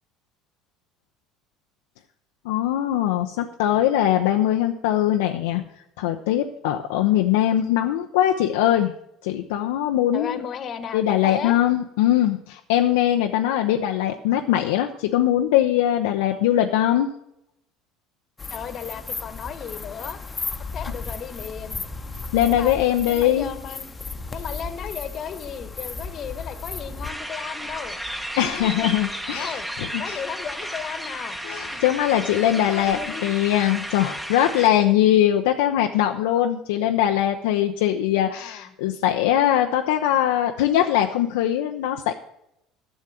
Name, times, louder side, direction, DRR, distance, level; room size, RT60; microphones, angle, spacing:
voice 1, 2.4-5.6 6.0-8.9 9.2-10.4 10.9-17.1 22.3-23.5 28.4-30.2 31.4-42.1, left 11 dB, 75° left, 4 dB, 0.6 m, -21 dB
voice 2, 10.1-11.6 13.4-13.5 18.5-20.2 20.7-21.8 22.5-23.9 24.3-28.0 28.4-29.7 30.0-31.4 31.7-32.0 32.4-33.2 38.4-38.7, left 8 dB, 45° left, 11 dB, 1.2 m, -35 dB
sound 1, 18.4-27.1, left 4 dB, 20° left, 1.0 m, -35 dB
sound 2, 27.0-34.7, equal, 5° right, 1.1 m, -33 dB
11.0 x 6.4 x 7.3 m, 0.80 s
hypercardioid pair, 65°, 0 cm